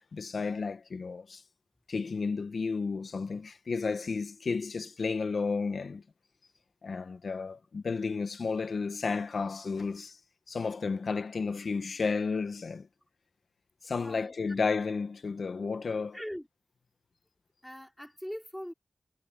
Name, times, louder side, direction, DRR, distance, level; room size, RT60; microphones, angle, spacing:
voice 1, 0.0-1.4 1.9-6.0 6.8-10.2 10.5-12.9 13.8-16.2, left 4 dB, 85° left, 1.1 m, -32 dB
voice 2, 13.9-14.6 16.1-16.5 17.6-18.7, equal, 5° left, 5.1 m, -41 dB
wide cardioid pair, 75°, 0 cm